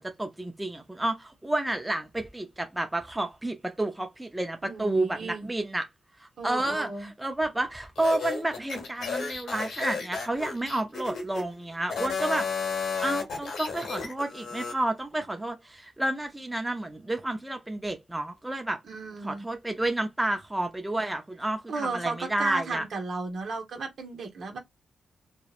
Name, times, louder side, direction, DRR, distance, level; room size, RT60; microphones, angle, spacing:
voice 1, 0.0-5.9 6.2-12.5 13.0-18.8 19.2-22.8, right 1 dB, 10° right, 0.4 m, -30 dB
voice 2, 4.6-5.5 6.4-7.1 18.9-19.4 21.7-24.6, right 3 dB, 65° right, 0.8 m, -34 dB
sound 1, 8.0-11.4 11.8-14.8, left 5 dB, 85° left, 1.0 m, -33 dB
2.7 x 2.0 x 2.3 m
cardioid pair, 90°, 0 cm